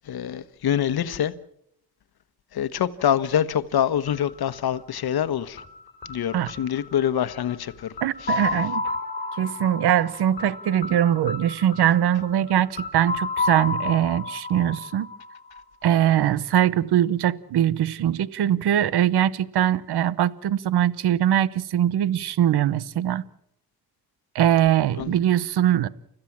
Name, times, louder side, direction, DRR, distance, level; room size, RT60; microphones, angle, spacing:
voice 1, 0.0-1.3 2.5-5.6 6.1-7.9 8.2-8.4 25.0-25.2, left 9 dB, 65° left, 1.3 m, -25 dB
sound 1, 4.1-15.9, left 3 dB, 25° left, 4.8 m, -33 dB
voice 2, 8.0-8.8 9.4-15.1 15.8-23.2 24.3-25.9, right 11 dB, 70° right, 0.9 m, -22 dB
30.0 x 14.5 x 7.4 m
cardioid pair, 110°, 40 cm